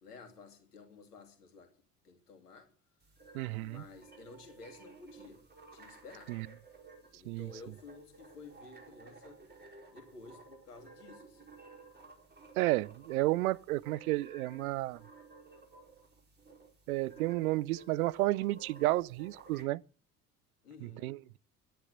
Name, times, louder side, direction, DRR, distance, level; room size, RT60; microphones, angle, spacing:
voice 1, 0.0-1.7 2.0-2.7 3.6-5.4 5.7-6.3 7.1-9.4 9.9-11.5 20.6-21.1, left 4 dB, 75° left, 2.6 m, -53 dB
sound 1, 3.0-19.6, right 3 dB, 20° right, 5.0 m, -56 dB
voice 2, 3.3-3.8 6.3-6.5 7.3-7.5 12.6-15.0 16.9-19.8 20.8-21.2, right 18 dB, 65° right, 0.6 m, -32 dB
11.5 x 10.0 x 7.9 m
figure-of-eight pair, 60°, 47 cm